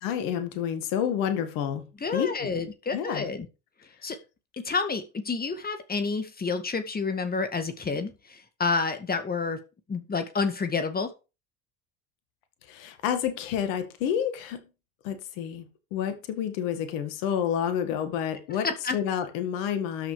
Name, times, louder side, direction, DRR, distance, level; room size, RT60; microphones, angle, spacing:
voice 1, 0.0-1.8 2.1-2.5 2.9-3.3 12.7-14.6 15.0-15.6 15.9-18.7 18.9-20.1, left 9 dB, 65° left, 2.1 m, -29 dB
voice 2, 2.0-3.5 4.0-4.2 4.6-9.6 9.9-11.1 18.5-19.0, left 4 dB, 25° left, 2.0 m, -29 dB
12.5 x 6.3 x 5.0 m
hypercardioid pair, 65°, 35 cm